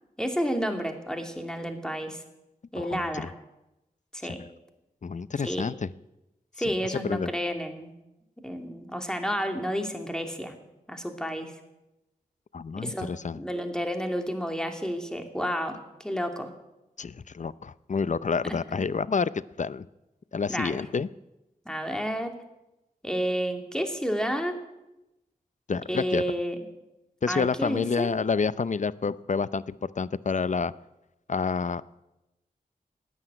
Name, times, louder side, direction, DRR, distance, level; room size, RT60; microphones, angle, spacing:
voice 1, 0.2-2.2 2.7-3.3 4.1-4.4 5.4-5.7 6.6-7.9 8.4-10.5 10.9-11.5 12.8-16.5 18.5-18.6 20.5-20.8 21.7-22.3 23.0-24.6 25.9-26.6 27.3-28.1, equal, 5° left, 4 dB, 2.7 m, -30 dB
voice 2, 2.8-3.3 4.2-4.3 5.0-5.9 6.9-7.3 12.5-13.4 17.0-19.9 20.3-21.1 25.7-26.2 27.2-30.7 31.3-31.8, left 5 dB, 50° left, 18 dB, 0.6 m, -29 dB
14.5 x 9.8 x 9.0 m, 0.95 s
cardioid pair, 40°, 16 cm